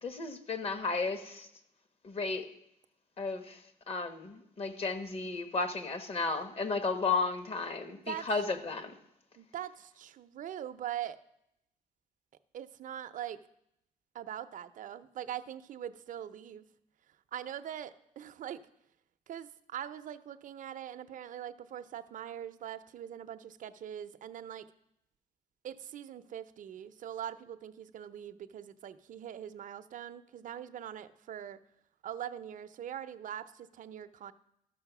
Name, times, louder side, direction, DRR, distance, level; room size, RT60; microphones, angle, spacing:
voice 1, 0.0-1.5 2.0-2.5 3.2-3.6 3.9-9.0, left 4 dB, 45° left, 10 dB, 1.1 m, -33 dB
voice 2, 9.4-11.2 12.5-13.4 14.1-16.7 17.3-18.6 19.3-24.6 25.6-31.6 32.0-34.3, right 10 dB, 60° right, 10 dB, 0.6 m, -42 dB
13.0 x 6.2 x 6.0 m, 0.78 s
cardioid pair, 125°, 15 cm